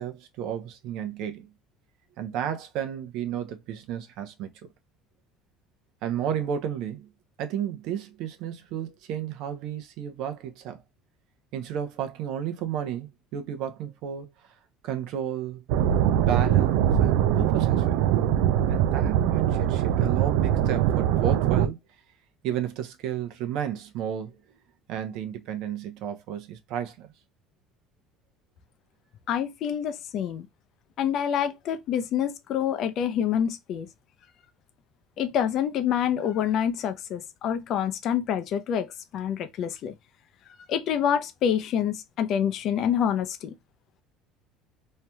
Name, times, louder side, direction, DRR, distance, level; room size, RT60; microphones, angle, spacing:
voice 1, 0.0-1.5 2.2-4.5 6.0-7.1 7.4-10.8 11.5-14.3 14.8-15.6 16.1-18.0 18.7-21.8 22.4-24.4 24.9-27.1, right 9 dB, 65° right, 0.8 m, -32 dB
sound 1, 15.7-21.7, right 10 dB, 85° right, 0.3 m, -22 dB
voice 2, 29.3-30.5 31.0-33.9 35.2-39.9 40.7-43.6, left 9 dB, 50° left, 0.5 m, -27 dB
3.2 x 2.8 x 2.2 m
cardioid pair, 150°, 0 cm